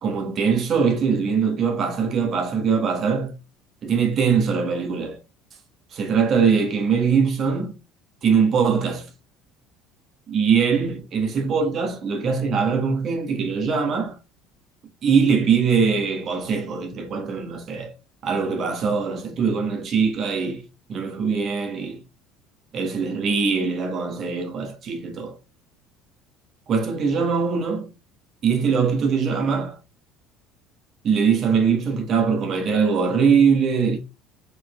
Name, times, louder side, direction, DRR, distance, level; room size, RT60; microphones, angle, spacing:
voice 1, 0.0-3.4 3.8-5.2 5.9-7.7 8.2-9.1 10.3-14.2 15.0-17.9 18.2-22.0 22.7-25.4 26.7-27.9 28.4-29.8 31.0-34.0, right 6 dB, 40° right, 1.3 m, -22 dB
5.3 x 4.3 x 2.2 m
figure-of-eight pair, 60°, 0 cm